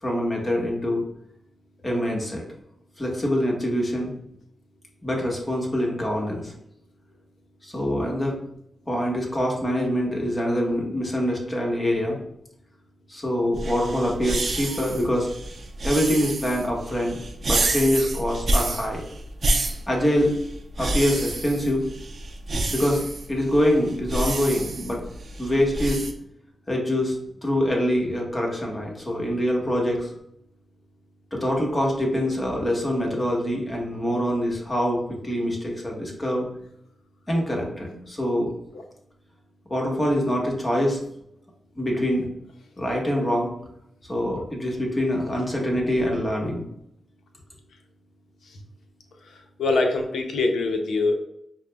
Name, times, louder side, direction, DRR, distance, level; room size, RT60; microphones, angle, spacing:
voice 1, 0.0-1.0 1.8-2.4 3.0-4.1 5.0-6.5 7.6-8.4 8.9-12.2 13.1-15.3 15.8-19.0 19.9-20.3 20.8-21.8 22.7-23.0 23.3-25.0 25.4-26.0 26.7-27.2 27.4-30.1 31.3-36.5 37.3-38.5 39.7-41.0 41.8-42.3 42.8-43.5 44.1-46.7, equal, 30° left, -1 dB, 1.1 m, -24 dB
sound 1, 13.5-26.1, right 2 dB, 60° right, 0.5 m, -29 dB
voice 2, 49.6-51.1, left 3 dB, 80° left, 4 dB, 0.5 m, -23 dB
5.8 x 2.0 x 2.2 m, 0.76 s
supercardioid pair, 40°, 0 cm